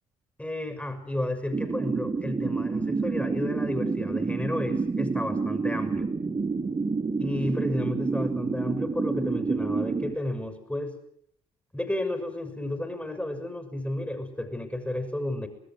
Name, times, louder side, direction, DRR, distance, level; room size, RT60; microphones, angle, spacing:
voice 1, 0.4-6.1 7.2-10.9 11.7-15.5, left 1 dB, 5° left, 8 dB, 6.3 m, -32 dB
sound 1, 1.5-10.1, right 4 dB, 30° right, 2.0 m, -28 dB
25.5 x 20.0 x 7.8 m, 0.69 s
figure-of-eight pair, 40°, 18 cm